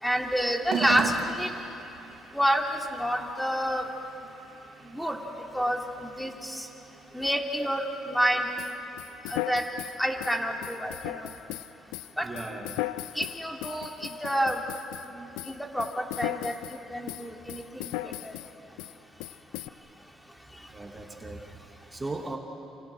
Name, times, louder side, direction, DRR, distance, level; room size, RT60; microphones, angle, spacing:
voice 1, 0.0-1.1 1.4-1.5 2.3-3.8 4.9-5.2 5.5-6.7 7.1-8.5 9.3-9.6 10.0-11.3 12.2-12.3 13.1-14.6 15.1-15.3 15.6-17.9 18.2-18.3, equal, 5° left, 1 dB, 3.2 m, -28 dB
sound 1, 0.6-19.3, right 7 dB, 70° right, 2.5 m, -43 dB
sound 2, 8.6-15.1 15.4-16.8 17.1-18.5 18.8-18.9 19.2-19.7, left 16 dB, 90° left, 0.6 m, -36 dB
voice 2, 12.2-12.8 19.8-19.9 20.7-21.4 21.9-22.4, right 2 dB, 20° right, 1 dB, 2.9 m, -37 dB
28.5 x 28.0 x 6.4 m, 2.9 s
supercardioid pair, 80°, 0 cm